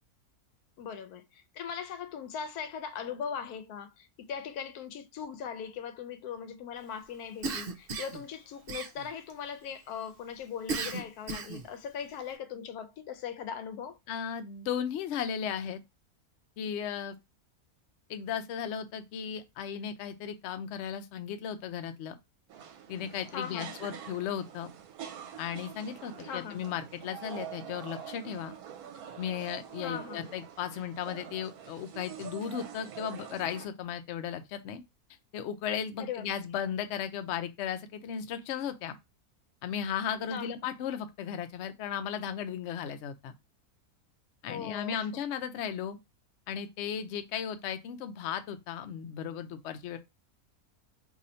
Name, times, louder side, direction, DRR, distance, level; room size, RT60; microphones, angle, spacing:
voice 1, 0.8-14.0 23.3-23.8 26.2-26.6 29.8-30.4 36.0-36.3 40.3-40.6 44.5-45.1, left 7 dB, 85° left, 1.1 m, -39 dB
Cough, 7.4-8.2 8.7-9.3 10.7-11.7, right 4 dB, 55° right, 0.7 m, -35 dB
voice 2, 14.1-15.8 16.6-17.2 18.1-22.2 22.9-24.7 25.4-28.5 29.2-34.8 35.3-39.0 39.6-43.3 44.4-46.0 46.5-50.0, left 8 dB, 65° left, 0.7 m, -36 dB
sound 1, 22.5-33.7, right 9 dB, 80° right, 1.0 m, -45 dB
2.7 x 2.6 x 4.2 m
omnidirectional pair, 1.6 m